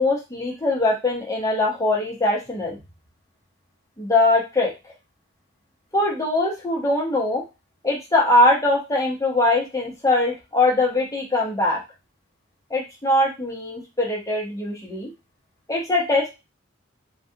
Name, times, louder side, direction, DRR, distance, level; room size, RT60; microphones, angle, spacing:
voice 1, 0.0-2.8 4.0-4.7 5.9-7.4 7.8-11.8 12.7-15.1 15.7-16.3, left 2 dB, 15° left, -3 dB, 0.8 m, -21 dB
3.3 x 2.4 x 2.7 m, 0.26 s
head